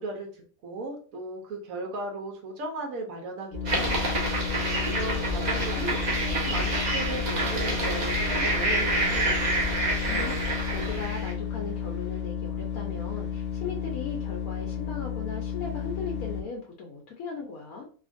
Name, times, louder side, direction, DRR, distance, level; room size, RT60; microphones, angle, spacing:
voice 1, 0.0-9.5, right 2 dB, 75° right, 1 dB, 1.2 m, -37 dB
sound 1, 3.5-16.4, left 8 dB, 15° left, 0.4 m, -33 dB
sound 2, 3.7-11.3, right 1 dB, 40° right, 0.7 m, -27 dB
voice 2, 10.1-17.9, left 5 dB, 85° left, -1 dB, 1.1 m, -38 dB
2.8 x 2.5 x 2.5 m, 0.42 s
omnidirectional pair, 1.5 m